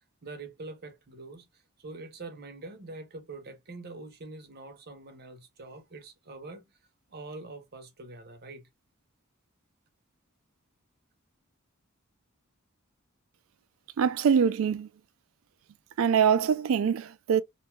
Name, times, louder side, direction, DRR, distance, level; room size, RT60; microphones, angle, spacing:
voice 1, 0.2-6.6 7.1-8.7, right 3 dB, 50° right, 0.7 m, -44 dB
voice 2, 14.0-14.9 16.0-17.4, right 7 dB, 70° right, 0.3 m, -24 dB
2.6 x 2.3 x 3.0 m
head